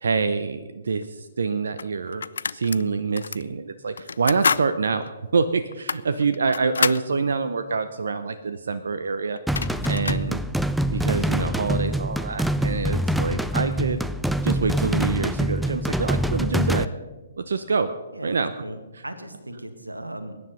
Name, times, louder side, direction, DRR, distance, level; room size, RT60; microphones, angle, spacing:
voice 1, 0.0-2.2 2.5-9.4 9.9-10.4 10.9-14.0 14.4-16.9 17.4-17.9 18.2-18.5 18.9-19.0, right 4 dB, 65° right, 10 dB, 0.8 m, -26 dB
sound 1, 1.0-1.1 1.8-2.8 3.2-3.4 4.0-4.7 5.0-5.1 5.7-7.1 9.0-9.1 9.4-10.3, left 5 dB, 70° left, 0.4 m, -27 dB
sound 2, 9.5-16.8, right 1 dB, ahead, 0.5 m, -25 dB
voice 2, 18.1-20.4, right 1 dB, 90° right, 8 dB, 1.8 m, -37 dB
21.5 x 10.0 x 5.3 m, 1.2 s
figure-of-eight pair, 125°, 0 cm